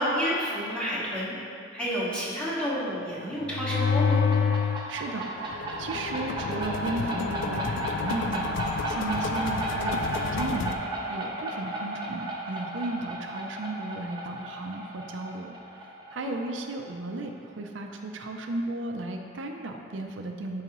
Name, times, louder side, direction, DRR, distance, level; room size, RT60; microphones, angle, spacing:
voice 1, 0.0-4.3 16.1-16.4, equal, 5° left, -9 dB, 1.7 m, -30 dB
sound 1, 3.4-4.9 5.3-10.7, left 5 dB, 80° left, 0.4 m, -29 dB
sound 2, 3.9-17.3, right 1 dB, 25° right, 1.0 m, -34 dB
voice 2, 4.9-10.0 10.3-15.5 16.1-20.6, right 2 dB, 80° right, 3 dB, 0.5 m, -35 dB
10.5 x 4.8 x 3.0 m, 2.4 s
head